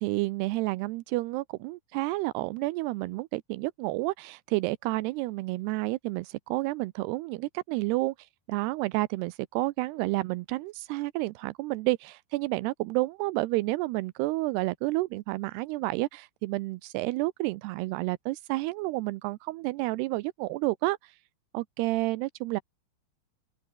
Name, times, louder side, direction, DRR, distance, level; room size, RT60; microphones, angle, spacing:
voice 1, 0.0-8.1 8.5-21.1 21.5-22.6, right 20 dB, 90° right, 2.3 m, -30 dB
open air
omnidirectional pair, 5.5 m